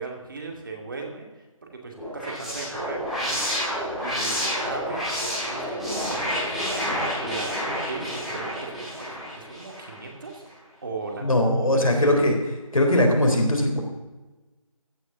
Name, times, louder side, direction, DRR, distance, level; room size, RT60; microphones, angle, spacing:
voice 1, 0.0-1.5 1.8-3.5 4.0-10.4 10.8-12.1, right 3 dB, 35° right, 2 dB, 2.5 m, -38 dB
sound 1, 2.0-10.0, equal, ahead, 2.2 m, -29 dB
voice 2, 11.2-12.4 12.7-13.8, left 1 dB, 75° left, 2 dB, 3.8 m, -20 dB
15.0 x 6.7 x 7.0 m, 1.2 s
figure-of-eight pair, 165°, 18 cm